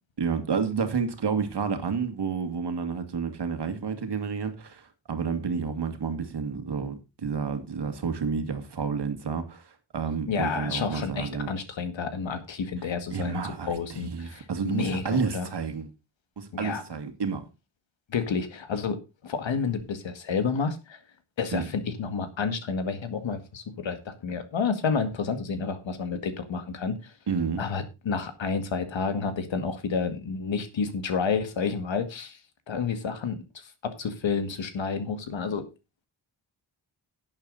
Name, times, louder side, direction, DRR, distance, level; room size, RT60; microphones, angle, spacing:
voice 1, 0.2-9.6 9.9-11.5 13.1-15.9 16.4-17.5 21.5-21.6 27.3-27.6, right 5 dB, 65° right, 2.1 m, -30 dB
voice 2, 10.3-15.5 16.5-16.8 18.1-21.0 21.4-27.1 27.6-32.4 32.7-33.4 33.8-35.6, left 5 dB, 85° left, 2.1 m, -30 dB
11.5 x 8.8 x 4.1 m
wide cardioid pair, 150°, 44 cm